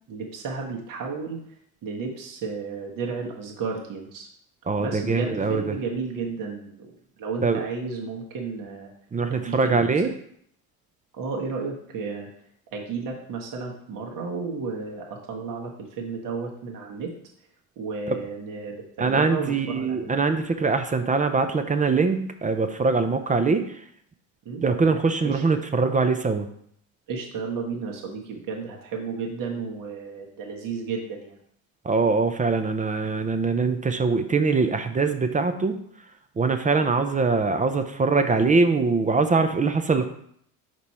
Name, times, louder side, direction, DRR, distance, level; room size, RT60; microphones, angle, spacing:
voice 1, 0.1-1.4 1.8-4.3 4.8-6.9 7.2-8.9 9.3-9.9 11.1-12.3 12.7-17.1 17.8-20.1 24.4-24.6 25.2-25.4 27.1-31.4, right 4 dB, 50° right, -1 dB, 1.3 m, -33 dB
voice 2, 4.7-5.7 7.4-7.6 9.1-10.1 19.0-23.8 24.6-26.5 31.8-35.8 36.4-40.1, right 4 dB, 20° right, 8 dB, 0.5 m, -23 dB
5.2 x 4.7 x 4.2 m, 0.68 s
hypercardioid pair, 75°, 43 cm